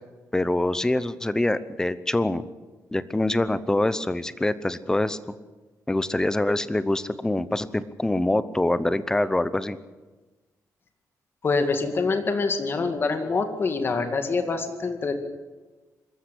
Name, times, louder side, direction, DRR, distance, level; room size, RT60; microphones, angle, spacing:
voice 1, 0.3-2.4 2.9-5.2 5.9-9.8, left 1 dB, 10° left, 14 dB, 0.8 m, -25 dB
voice 2, 11.4-15.2, left 4 dB, 35° left, 6 dB, 2.2 m, -25 dB
24.0 x 14.0 x 8.4 m, 1.3 s
wide cardioid pair, 155°, 6 cm